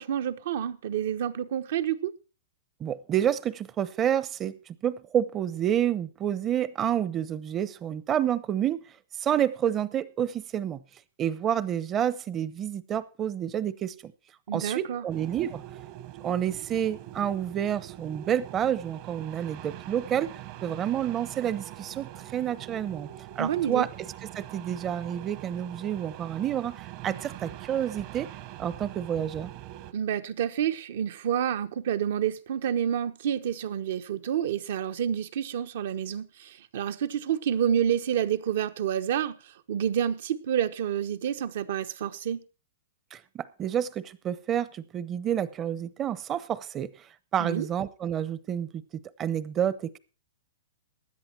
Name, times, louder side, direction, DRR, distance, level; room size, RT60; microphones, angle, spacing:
voice 1, 0.0-2.1 14.5-15.0 23.4-23.8 29.9-39.3 39.7-42.4 47.4-47.7, right 9 dB, 65° right, 1.1 m, -28 dB
voice 2, 2.8-4.5 4.8-8.8 9.2-10.8 11.2-14.1 14.5-15.6 16.2-23.1 23.4-23.9 24.3-28.3 28.6-29.5 43.1-46.9 47.3-48.8 49.2-50.0, right 10 dB, 25° right, 0.8 m, -29 dB
sound 1, 15.1-29.9, right 14 dB, 45° right, 1.3 m, -43 dB
16.0 x 10.5 x 4.5 m
hypercardioid pair, 135°, 0 cm